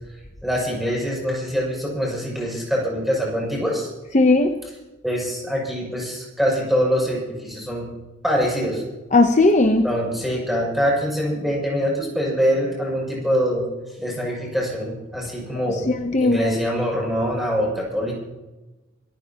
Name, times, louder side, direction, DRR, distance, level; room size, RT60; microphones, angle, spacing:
voice 1, 0.4-3.9 5.0-7.9 8.2-8.8 9.8-13.7 14.0-15.9 16.2-18.1, equal, ahead, -4 dB, 6.9 m, -24 dB
voice 2, 4.1-4.5 9.1-9.9 15.9-16.5, left 2 dB, 40° left, 5 dB, 0.9 m, -17 dB
26.5 x 15.0 x 3.0 m, 1.1 s
head